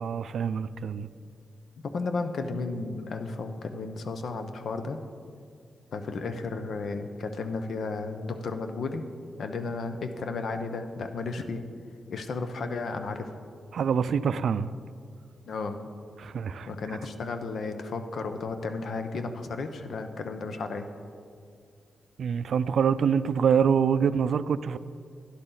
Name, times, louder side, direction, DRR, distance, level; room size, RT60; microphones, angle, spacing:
voice 1, 0.0-1.1 13.7-14.7 16.2-16.7 22.2-24.8, right 7 dB, 75° right, 15 dB, 0.3 m, -25 dB
voice 2, 1.8-5.0 5.9-9.1 9.4-11.6 12.1-13.3 15.5-15.8 16.7-20.9, left 3 dB, 70° left, 7 dB, 0.8 m, -33 dB
12.0 x 10.5 x 3.9 m, 2.2 s
wide cardioid pair, 110°, 0 cm